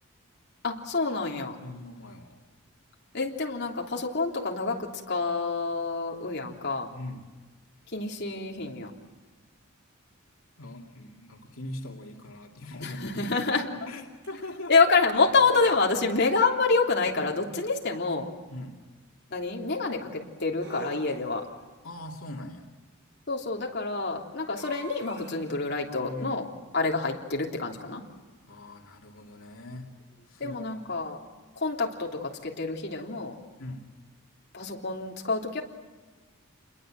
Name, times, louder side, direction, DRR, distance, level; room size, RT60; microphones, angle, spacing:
voice 1, 0.6-1.6 3.1-6.9 7.9-8.9 12.8-13.7 14.7-18.3 19.3-21.4 23.3-26.4 26.7-28.0 30.4-31.2 31.5-33.3 34.5-35.6, left 4 dB, 55° left, -1 dB, 3.3 m, -27 dB
voice 2, 1.6-2.4 6.9-7.3 10.6-14.8 18.5-18.8 21.8-22.7 25.8-26.5 28.5-29.9 30.3-30.7 33.6-33.9, left 1 dB, 80° left, 0 dB, 2.5 m, -41 dB
sound 1, 14.2-14.3 15.3-16.0 17.2-17.9 20.6-21.6 24.5-25.6, right 3 dB, 55° right, 5.6 m, -46 dB
28.0 x 22.0 x 7.8 m, 1.3 s
head